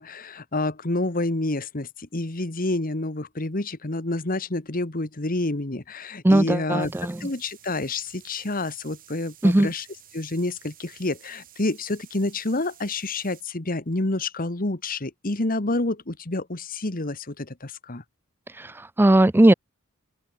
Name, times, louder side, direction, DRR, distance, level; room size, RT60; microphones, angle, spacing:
voice 1, 0.0-9.8 10.1-18.0, left 2 dB, 40° left, 1.5 m, -28 dB
voice 2, 6.2-7.2 9.4-9.7 18.6-19.5, right 1 dB, 10° right, 0.4 m, -18 dB
sound 1, 6.8-13.4, right 11 dB, 40° right, 3.7 m, -52 dB
head